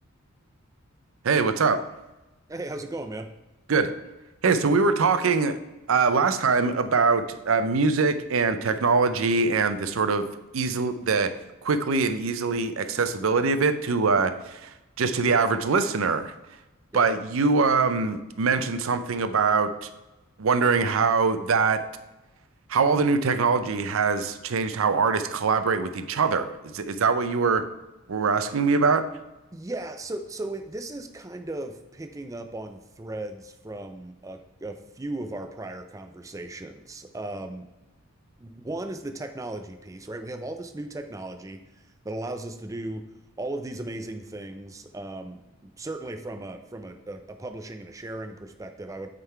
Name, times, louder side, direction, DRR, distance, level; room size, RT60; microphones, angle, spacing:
voice 1, 1.2-1.8 3.7-3.9 4.4-5.6 5.9-10.3 10.5-11.3 11.6-14.7 15.0-16.3 16.9-19.9 20.4-21.8 22.7-26.5 26.7-27.7 28.1-29.0, right 4 dB, 75° right, 10 dB, 0.5 m, -23 dB
voice 2, 2.5-3.3 16.9-17.1 29.5-37.7 38.4-43.1 43.4-49.1, right 2 dB, 15° right, 6 dB, 0.4 m, -36 dB
8.5 x 3.8 x 4.5 m, 1.0 s
head